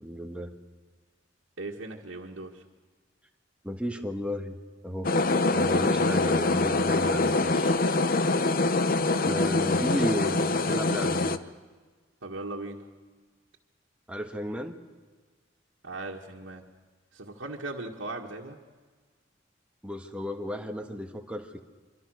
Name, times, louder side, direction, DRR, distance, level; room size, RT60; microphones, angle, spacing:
voice 1, 0.0-0.5 3.6-4.6 4.8-5.1 5.5-7.7 9.2-11.4 14.1-14.8 19.8-21.6, equal, 5° right, 4 dB, 1.6 m, -34 dB
voice 2, 1.6-2.6 8.9-9.5 10.0-10.1 12.2-12.9 15.8-16.7 17.1-18.6, right 2 dB, 80° right, -3 dB, 1.9 m, -39 dB
sound 1, 5.0-11.4, left 2 dB, 50° left, 0.9 m, -24 dB
26.5 x 24.0 x 6.5 m, 1.4 s
head